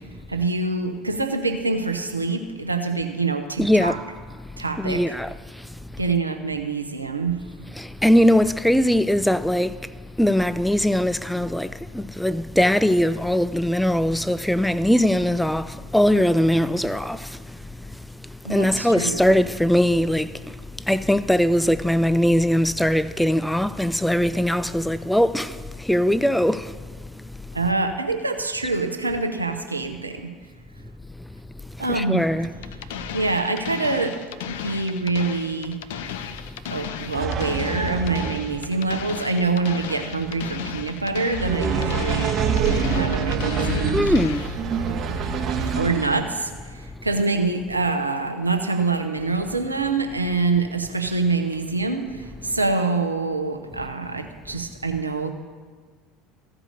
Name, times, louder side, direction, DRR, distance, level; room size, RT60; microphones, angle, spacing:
voice 1, 0.3-4.0 4.6-5.1 6.0-7.4 18.4-19.2 27.5-30.3 31.8-32.5 33.1-34.2 34.5-35.8 36.7-42.3 42.9-44.3 45.8-55.3, right 3 dB, 90° right, 0.7 m, -25 dB
voice 2, 3.6-4.0 4.8-5.3 7.8-9.7 10.2-17.4 18.5-20.5 20.9-26.7 31.9-32.5 43.9-44.5, equal, 5° left, 0.3 m, -21 dB
sound 1, 32.6-44.6, left 8 dB, 65° left, 0.5 m, -35 dB
sound 2, 37.1-46.2, right 5 dB, 40° right, 1.0 m, -26 dB
14.5 x 5.0 x 6.5 m
figure-of-eight pair, 70°, 0 cm